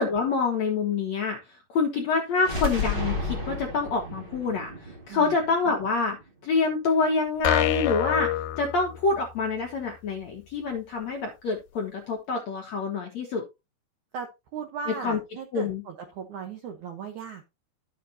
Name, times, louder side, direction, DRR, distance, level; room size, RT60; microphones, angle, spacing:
voice 1, 0.0-6.2 6.4-13.4 15.0-15.2 15.5-15.8, left 4 dB, 65° left, 1 dB, 1.8 m, -27 dB
sound 1, 2.3-6.2, left 3 dB, 45° right, 0.6 m, -32 dB
sound 2, 7.4-9.4, left 12 dB, 90° left, 2.9 m, -27 dB
voice 2, 14.1-17.4, right 6 dB, 75° right, 5 dB, 1.8 m, -37 dB
12.0 x 7.3 x 2.8 m, 0.24 s
omnidirectional pair, 5.0 m